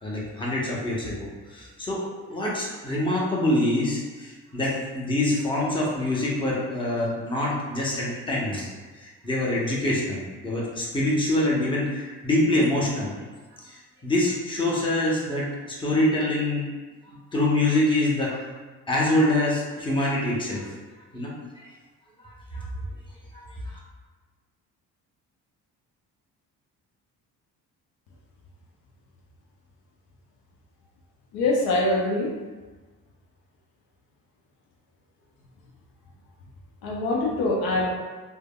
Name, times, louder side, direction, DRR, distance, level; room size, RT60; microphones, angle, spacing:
voice 1, 0.0-8.7 9.0-13.2 13.6-16.7 17.3-18.5 18.9-20.7 21.1-21.3 22.2-22.7 23.3-23.8, left 1 dB, 15° left, -5 dB, 0.7 m, -25 dB
voice 2, 31.3-32.3 36.8-37.9, left 2 dB, 70° left, -2 dB, 0.6 m, -24 dB
3.3 x 2.1 x 2.2 m, 1.3 s
supercardioid pair, 70°, 38 cm